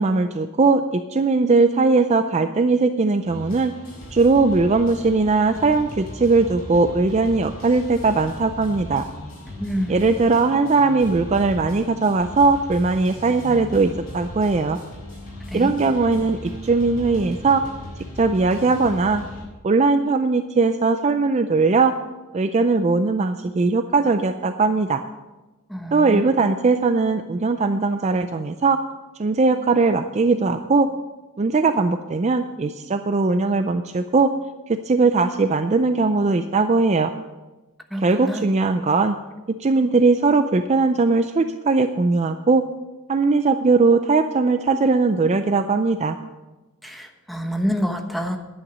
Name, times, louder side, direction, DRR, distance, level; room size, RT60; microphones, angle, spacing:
voice 1, 0.0-3.7 4.1-9.0 9.9-14.8 15.5-17.6 18.2-19.2 19.6-21.9 22.3-25.0 25.9-28.8 29.2-30.9 31.4-34.3 34.7-37.1 38.0-39.2 39.5-42.6 43.1-46.2, right 3 dB, 30° right, 9 dB, 0.4 m, -19 dB
sound 1, 3.2-19.4, left 1 dB, 45° left, 4.7 m, -37 dB
voice 2, 9.6-10.0 15.5-15.7 25.7-26.3 37.9-38.5 46.8-48.4, equal, ahead, 4 dB, 1.0 m, -27 dB
10.5 x 9.0 x 6.3 m, 1.1 s
head